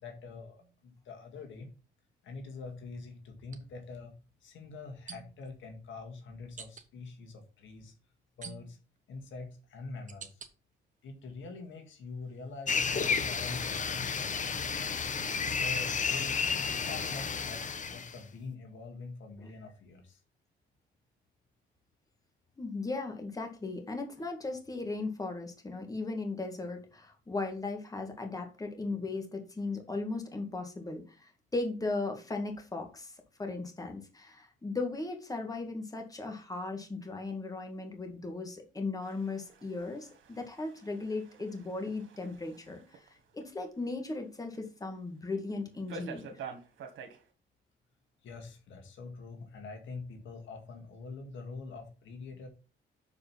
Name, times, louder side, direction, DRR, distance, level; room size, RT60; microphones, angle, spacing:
voice 1, 0.0-1.7 2.2-4.1 4.4-7.9 8.4-8.8 9.1-10.4 11.0-14.6 15.2-16.4 16.8-20.2 48.2-52.5, left 3 dB, 75° left, 4 dB, 1.9 m, -45 dB
sound 1, 0.6-0.8 3.4-3.6 5.1-5.5 6.6-6.9 8.4-9.0 9.6-10.5 11.1-11.7 12.2-14.2, right 6 dB, 40° right, 1.1 m, -50 dB
sound 2, 12.7-18.2, left 5 dB, 40° left, 0.9 m, -32 dB
voice 2, 22.6-43.0 43.3-46.3, left 3 dB, 20° left, 3 dB, 1.9 m, -37 dB
sound 3, 39.0-43.1 43.4-43.5 44.1-44.2 44.5-44.6 45.9-47.2, right 5 dB, 75° right, 1.8 m, -48 dB
6.6 x 4.9 x 5.8 m, 0.33 s
cardioid pair, 90°, 20 cm